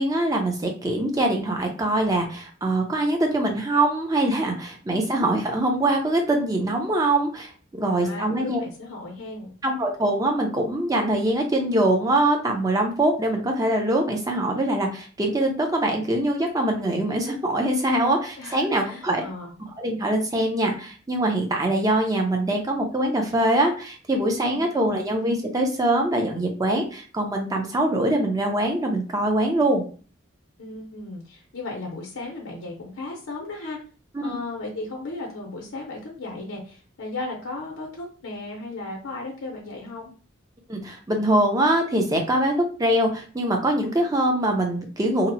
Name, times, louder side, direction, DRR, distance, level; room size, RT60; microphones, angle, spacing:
voice 1, 0.0-7.5 7.8-8.6 9.6-19.2 19.8-29.8 34.1-34.3 40.7-42.5 42.8-45.3, right 1 dB, 15° right, 2 dB, 0.4 m, -23 dB
voice 2, 7.9-9.5 18.4-19.5 24.4-25.0 30.6-33.8 34.2-40.1, left 2 dB, 80° left, -2 dB, 0.6 m, -36 dB
2.7 x 2.0 x 2.6 m, 0.39 s
head